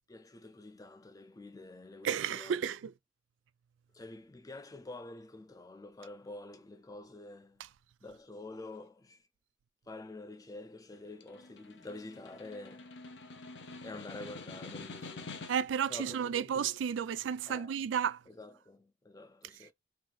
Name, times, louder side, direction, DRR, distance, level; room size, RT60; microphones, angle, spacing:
voice 1, 0.1-2.6 3.9-7.6 8.0-9.2 9.9-13.0 13.8-15.4 15.9-16.6 17.5-17.7 18.3-19.7, left 2 dB, 20° left, 0.5 m, -48 dB
voice 2, 2.0-2.9 15.5-18.2, right 8 dB, 85° right, 0.4 m, -32 dB
Snare drum, 10.9-15.8, left 3 dB, 70° left, 0.6 m, -47 dB
3.5 x 2.6 x 3.1 m
head